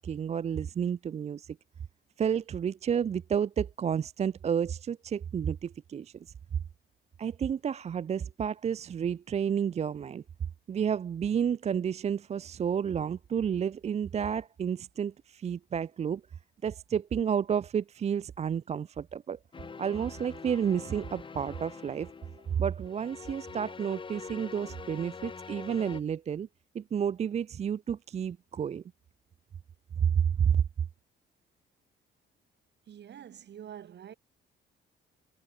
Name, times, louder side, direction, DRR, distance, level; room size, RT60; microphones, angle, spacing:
voice 1, 0.0-1.6 2.2-6.3 7.2-10.2 10.7-16.2 16.6-19.4 19.8-22.1 22.5-26.5 26.7-28.8 30.0-30.6, right 8 dB, 35° right, 0.4 m, -30 dB
sound 1, 19.5-26.0, left 5 dB, 25° left, 0.9 m, -45 dB
voice 2, 32.9-34.1, right 9 dB, 60° right, 5.5 m, -46 dB
cardioid pair, 110°, 20 cm